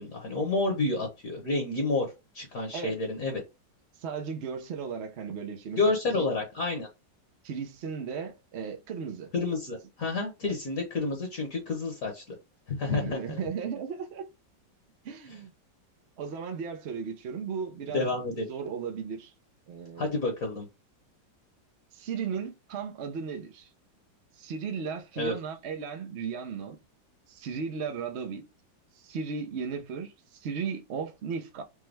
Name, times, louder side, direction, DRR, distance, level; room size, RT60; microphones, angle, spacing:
voice 1, 0.0-2.1 2.3-3.4 5.8-6.9 9.3-12.2 12.7-13.4 17.9-18.5 20.0-20.7 25.2-25.3, left 3 dB, 50° left, 1.3 m, -29 dB
voice 2, 4.0-6.3 7.4-9.3 10.4-10.5 12.9-14.3 15.0-15.5 16.2-18.1 18.5-19.3 19.7-20.2 21.9-23.7 24.4-26.8 27.3-28.4 28.9-31.6, right 6 dB, 80° right, 0.6 m, -36 dB
5.2 x 2.1 x 3.3 m
omnidirectional pair, 2.1 m